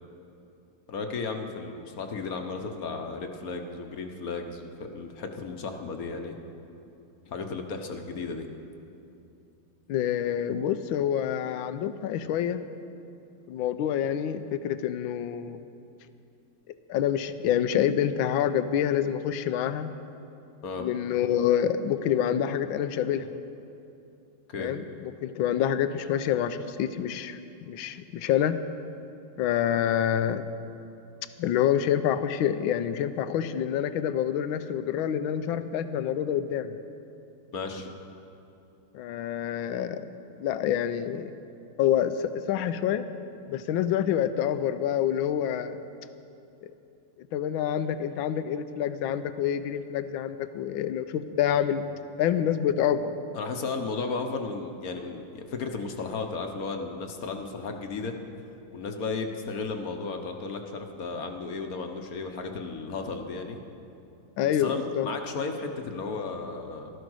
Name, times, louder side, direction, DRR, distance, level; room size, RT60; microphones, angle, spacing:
voice 1, 0.9-6.3 7.3-8.5 20.6-20.9 24.5-24.7 37.5-37.9 53.3-58.2 58.7-63.6 64.4-66.9, left 4 dB, 55° left, 5 dB, 1.3 m, -34 dB
voice 2, 9.9-12.6 13.5-15.6 16.9-19.9 20.8-23.3 24.6-24.8 25.2-27.4 27.7-28.6 29.4-30.4 31.4-36.8 38.9-40.1 40.4-41.3 41.8-43.1 43.5-45.8 46.6-46.7 47.3-51.8 52.2-53.1 64.4-65.1, left 10 dB, 85° left, 12 dB, 1.4 m, -27 dB
14.5 x 12.5 x 6.3 m, 2.7 s
omnidirectional pair, 2.1 m